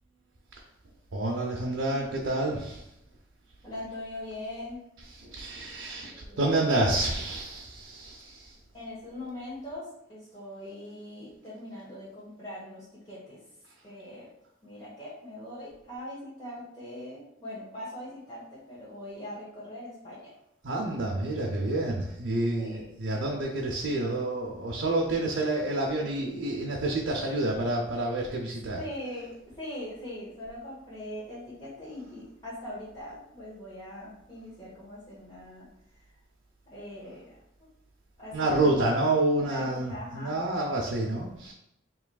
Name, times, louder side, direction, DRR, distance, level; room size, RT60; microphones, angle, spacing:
voice 1, 1.1-2.8 5.1-8.5 20.6-28.8 38.3-41.5, right 2 dB, 70° right, -2 dB, 0.6 m, -28 dB
voice 2, 3.6-4.8 6.1-6.4 8.7-13.4 13.8-14.3 14.6-20.2 22.5-22.9 28.7-35.7 36.7-37.3 38.2-39.1 39.4-40.4, left 1 dB, 30° left, -11 dB, 1.2 m, -41 dB
4.8 x 3.1 x 2.3 m, 0.81 s
head